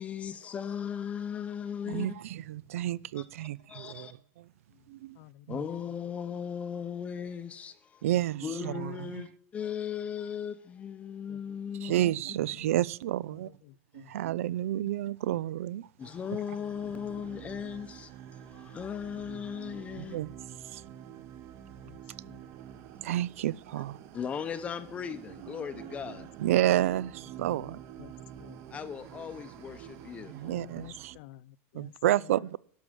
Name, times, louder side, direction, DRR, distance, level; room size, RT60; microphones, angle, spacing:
voice 1, 0.0-2.1 3.1-4.1 5.5-8.1 8.4-12.1 16.0-20.2 24.1-26.3 28.7-30.4, left 8 dB, 20° left, 0.7 m, -37 dB
voice 2, 1.9-4.1 4.9-5.2 5.5-5.6 8.0-9.2 11.8-13.5 13.9-15.9 20.0-20.3 20.7-20.8 23.0-24.0 26.4-27.8 30.3-31.1 31.7-32.6, right 13 dB, 90° right, 0.4 m, -30 dB
voice 3, 4.7-5.6 8.1-8.2 11.3-11.4 11.9-12.0 12.4-12.7 13.3-14.2 16.0-16.2 16.6-16.7 19.1-19.2 21.8-22.5 26.1-26.2 26.6-26.8 27.6-28.7 30.4-32.6, left 17 dB, 50° left, 0.5 m, -53 dB
sound 1, 16.0-31.2, right 10 dB, 35° right, 0.9 m, -48 dB
11.5 x 6.1 x 7.6 m
supercardioid pair, 160°, 7 cm